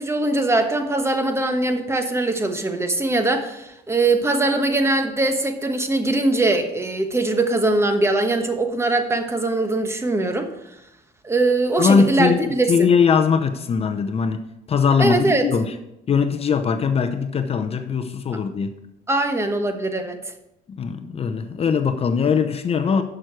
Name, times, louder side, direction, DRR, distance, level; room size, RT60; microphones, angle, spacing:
voice 1, 0.0-10.5 11.2-12.9 15.0-15.5 19.1-20.2, right 2 dB, 15° right, 7 dB, 1.2 m, -21 dB
voice 2, 11.8-14.4 14.7-15.7 16.1-18.8 20.7-23.0, left 6 dB, 35° left, 8 dB, 0.7 m, -20 dB
11.0 x 6.3 x 4.7 m, 0.86 s
cardioid pair, 110°, 17 cm